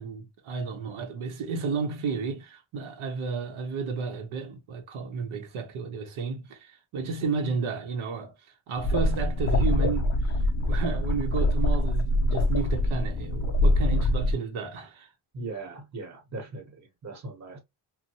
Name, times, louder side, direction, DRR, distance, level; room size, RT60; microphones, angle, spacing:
voice 1, 0.0-15.1, right 4 dB, 85° right, 0.9 m, -32 dB
sound 1, 8.8-14.3, left 1 dB, 35° left, 0.5 m, -24 dB
voice 2, 15.3-17.6, right 3 dB, 35° right, 1.0 m, -39 dB
2.7 x 2.1 x 2.7 m
wide cardioid pair, 150°, 47 cm